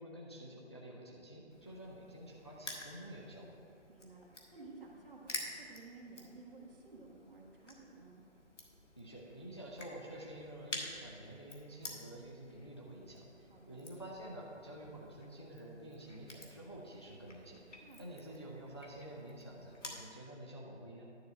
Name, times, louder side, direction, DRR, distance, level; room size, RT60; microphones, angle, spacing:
voice 1, 0.0-3.6 9.0-21.2, right 1 dB, 25° left, -3 dB, 0.5 m, -49 dB
Crushing, 1.5-20.1, left 2 dB, 90° left, 1.6 m, -51 dB
voice 2, 3.9-4.2 4.5-8.2 13.5-13.8 17.8-18.3, right 3 dB, 50° right, -2 dB, 1.6 m, -54 dB
10.5 x 3.9 x 7.2 m, 2.7 s
figure-of-eight pair, 165°, 36 cm